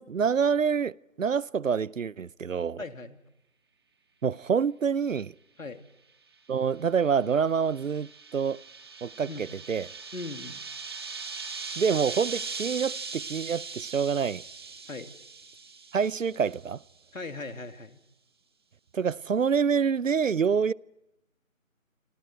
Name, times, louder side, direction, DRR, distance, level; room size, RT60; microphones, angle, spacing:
voice 1, 0.0-2.8 4.2-5.3 6.5-8.6 9.0-9.9 11.8-14.4 15.9-16.8 18.9-20.7, right 6 dB, 70° right, 0.7 m, -27 dB
voice 2, 2.8-3.2 5.6-5.8 9.3-9.5 10.1-10.6 14.9-15.1 17.1-18.0, left 3 dB, 80° left, 2.9 m, -39 dB
sound 1, 6.8-16.6, right 4 dB, 20° right, 1.8 m, -40 dB
28.0 x 27.0 x 4.5 m
figure-of-eight pair, 175°, 40 cm